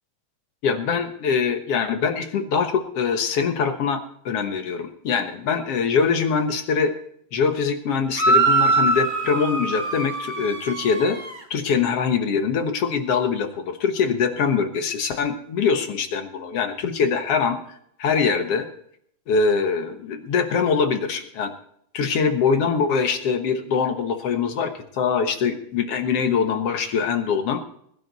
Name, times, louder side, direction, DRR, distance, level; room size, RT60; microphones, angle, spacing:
voice 1, 0.6-6.9 7.3-11.2 11.5-17.6 18.0-18.7 19.3-21.5 21.9-27.6, left 6 dB, 55° left, 7 dB, 2.0 m, -23 dB
sound 1, 8.1-11.4, right 3 dB, 15° right, 2.1 m, -22 dB
20.5 x 11.0 x 4.2 m, 0.68 s
omnidirectional pair, 3.7 m